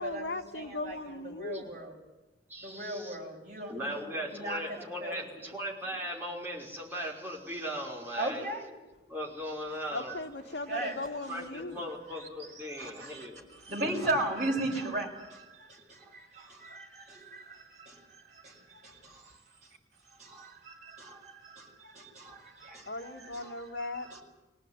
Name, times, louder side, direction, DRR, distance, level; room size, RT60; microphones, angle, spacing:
voice 1, 0.0-1.8 9.9-11.9 22.9-24.1, left 2 dB, 75° left, 4 dB, 2.0 m, -38 dB
voice 2, 0.5-2.0 2.6-4.0 4.3-5.2 8.2-8.7 10.7-11.0 11.7-11.9 12.8-13.3 13.6-19.1 20.2-24.2, right 1 dB, 40° right, -2 dB, 6.9 m, -37 dB
voice 3, 2.5-3.2 3.7-8.5 9.1-10.2 11.3-13.5, equal, 10° right, -4 dB, 5.4 m, -38 dB
24.5 x 18.0 x 9.8 m, 1.1 s
head